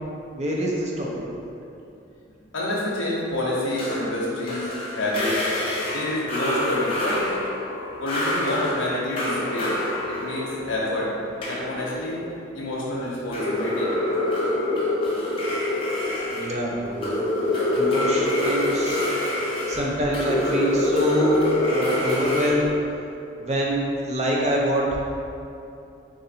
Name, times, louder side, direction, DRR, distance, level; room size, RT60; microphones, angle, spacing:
voice 1, 0.3-1.5 16.3-17.0 17.7-19.1 19.7-21.4 21.7-22.6 23.4-23.8 24.1-25.0, equal, 35° right, -3 dB, 0.5 m, -25 dB
voice 2, 2.5-5.4 5.9-7.2 8.0-9.7 10.1-11.1 11.5-12.2 12.5-13.9, left 1 dB, 85° left, -6 dB, 0.7 m, -28 dB
sound 1, 3.8-12.2 13.2-22.5, left 1 dB, 30° left, 0.6 m, -26 dB
3.8 x 2.5 x 4.2 m, 2.7 s
head